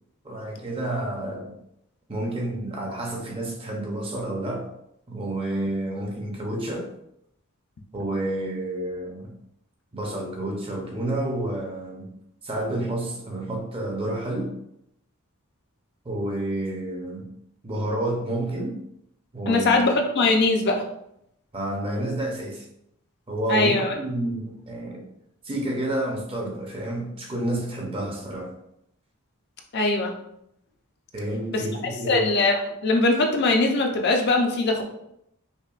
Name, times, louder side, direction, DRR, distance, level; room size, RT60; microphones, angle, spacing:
voice 1, 0.2-1.5 2.1-4.7 5.1-6.9 7.9-9.3 9.9-12.1 12.4-14.5 16.0-17.3 17.6-18.8 19.3-19.8 21.5-22.7 23.3-25.0 25.4-28.5 31.1-32.3, right 1 dB, 25° right, 0 dB, 0.6 m, -29 dB
voice 2, 19.5-20.8 23.5-23.9 29.7-30.1 31.5-31.6 32.1-34.8, left 2 dB, 50° left, 2 dB, 0.5 m, -21 dB
5.4 x 2.2 x 2.4 m, 0.78 s
head